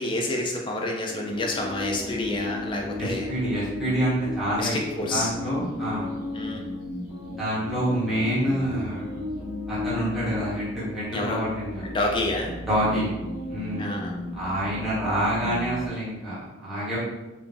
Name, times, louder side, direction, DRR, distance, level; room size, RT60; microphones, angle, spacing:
voice 1, 0.0-3.3 4.6-5.3 6.3-6.6 11.1-11.4 11.8-12.5 13.8-14.1, left 2 dB, 25° left, 0 dB, 0.4 m, -28 dB
sound 1, 1.1-15.9, left 2 dB, 55° left, 0.7 m, -35 dB
voice 2, 3.0-6.1 7.3-9.2 9.7-11.8 12.7-13.1 13.5-13.9 14.3-17.0, right 1 dB, ahead, -11 dB, 0.9 m, -27 dB
3.3 x 2.0 x 2.6 m, 1.1 s
head